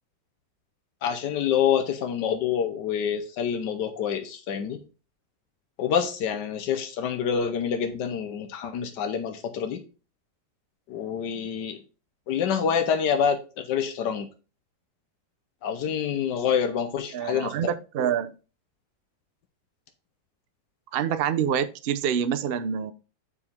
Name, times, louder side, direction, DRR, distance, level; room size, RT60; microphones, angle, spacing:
voice 1, 1.0-4.8 5.8-9.8 10.9-11.8 12.3-14.3 15.6-17.5, left 7 dB, 90° left, 7 dB, 1.5 m, -27 dB
voice 2, 17.1-18.3 20.9-22.9, right 8 dB, 85° right, 12 dB, 0.5 m, -26 dB
8.7 x 4.8 x 3.5 m, 0.33 s
omnidirectional pair, 1.8 m